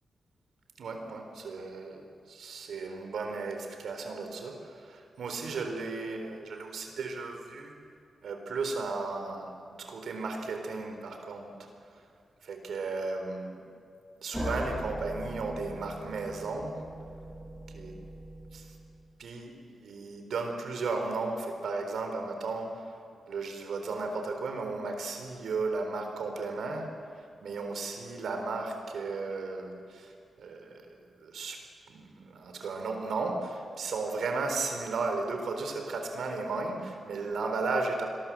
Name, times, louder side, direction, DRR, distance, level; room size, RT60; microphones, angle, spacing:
voice 1, 0.8-2.0 2.3-7.7 8.2-11.5 12.4-13.6 14.2-16.8 17.7-17.9 18.5-18.7 19.2-22.8 23.3-26.9 27.4-30.1 30.4-30.8 31.2-38.1, right 3 dB, 75° right, 4 dB, 3.9 m, -35 dB
sound 1, 14.3-19.0, equal, ahead, 5.9 m, -40 dB
28.5 x 22.0 x 7.6 m, 2.6 s
wide cardioid pair, 175°, 0 cm